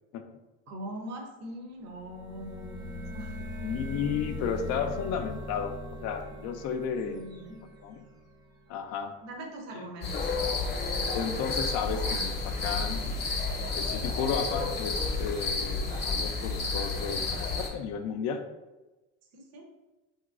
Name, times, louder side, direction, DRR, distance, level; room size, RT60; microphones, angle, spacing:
voice 1, 0.7-3.4 7.0-7.6 9.2-10.2 19.3-19.7, right 1 dB, 55° right, 1 dB, 0.7 m, -42 dB
sound 1, 1.9-8.6, left 1 dB, 15° right, 0.6 m, -40 dB
voice 2, 3.6-5.8 6.0-7.2 7.8-8.1 8.7-9.1 9.7-9.9 10.1-10.3 11.1-13.5 13.8-18.4, left 7 dB, 55° left, 7 dB, 0.4 m, -33 dB
sound 2, 10.0-17.7, left 3 dB, 30° left, 0.8 m, -31 dB
3.0 x 2.8 x 2.4 m, 1.1 s
supercardioid pair, 95°, 31 cm